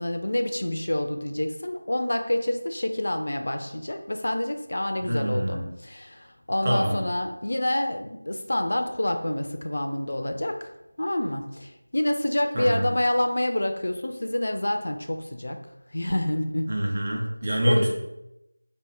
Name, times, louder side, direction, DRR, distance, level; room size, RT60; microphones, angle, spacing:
voice 1, 0.0-10.7 11.0-15.6 15.9-16.7 17.7-17.9, left 1 dB, 50° left, 5 dB, 0.3 m, -27 dB
voice 2, 5.0-5.6 6.6-7.0 12.5-12.9 16.7-17.9, right 1 dB, 25° right, -3 dB, 0.6 m, -25 dB
3.3 x 2.0 x 3.5 m, 0.90 s
figure-of-eight pair, 170°, 0 cm